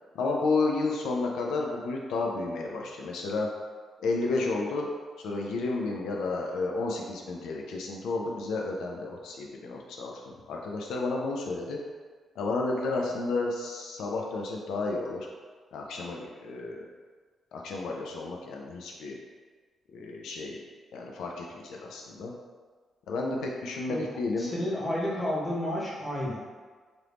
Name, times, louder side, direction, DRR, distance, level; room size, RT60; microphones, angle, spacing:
voice 1, 0.1-3.5 4.0-4.9 5.2-11.8 12.4-15.3 15.7-16.9 17.5-19.2 19.9-20.6 20.9-22.3 23.1-24.5, left 3 dB, 90° left, 0 dB, 0.4 m, -31 dB
voice 2, 24.4-26.4, left 1 dB, 15° left, -7 dB, 0.8 m, -31 dB
2.9 x 2.5 x 3.3 m, 1.5 s
cardioid pair, 145°, 0 cm